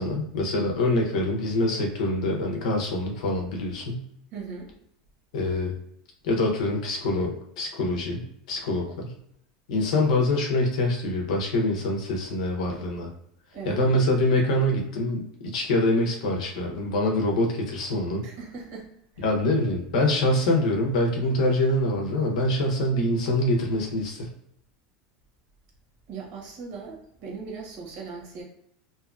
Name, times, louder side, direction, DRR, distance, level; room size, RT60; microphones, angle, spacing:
voice 1, 0.0-4.0 5.3-5.7 6.2-9.1 9.7-13.1 13.7-18.2 19.2-24.3, left 1 dB, 80° left, 1 dB, 0.7 m, -25 dB
voice 2, 4.3-4.7 13.5-13.9 18.2-18.9 19.1-19.3 26.1-28.4, right 5 dB, 60° right, -1 dB, 1.0 m, -39 dB
2.7 x 2.3 x 2.4 m, 0.75 s
supercardioid pair, 120°, 4 cm